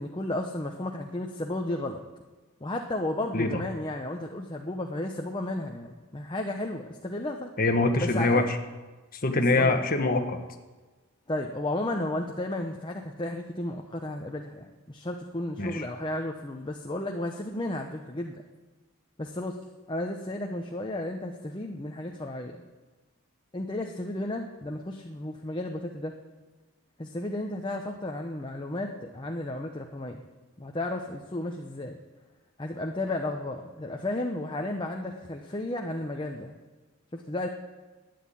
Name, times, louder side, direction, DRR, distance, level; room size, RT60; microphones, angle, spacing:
voice 1, 0.0-2.0 2.6-7.5 8.0-8.4 9.3-9.8 11.3-18.4 19.2-19.6 19.9-22.6 23.5-26.1 27.0-30.2 30.6-32.0 32.6-36.5 37.1-37.5, left 1 dB, 20° left, 2 dB, 0.8 m, -33 dB
voice 2, 7.6-8.4 9.2-10.4 15.6-15.8, left 2 dB, 40° left, 5 dB, 1.3 m, -24 dB
12.5 x 9.5 x 8.5 m, 1.3 s
head